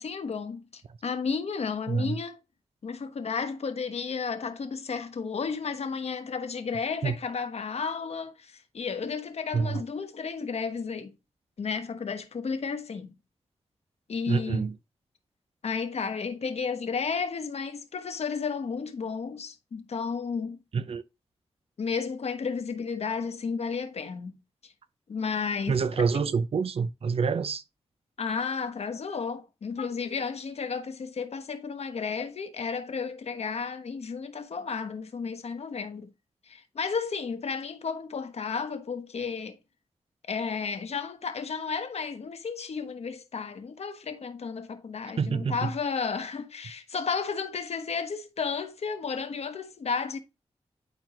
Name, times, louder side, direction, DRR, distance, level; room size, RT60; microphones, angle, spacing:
voice 1, 0.0-2.4 2.8-11.1 11.6-13.1 14.1-14.6 15.6-20.6 21.8-24.4 24.6-24.7 25.1-26.1 28.2-36.1 36.5-39.5 40.3-50.2, left 5 dB, 70° left, 1.1 m, -33 dB
voice 2, 1.9-2.2 7.0-7.1 9.5-9.8 14.3-14.7 20.7-21.0 25.7-27.6 45.2-45.7, right 5 dB, 60° right, 0.5 m, -27 dB
10.5 x 4.4 x 2.9 m
cardioid pair, 60°, 11 cm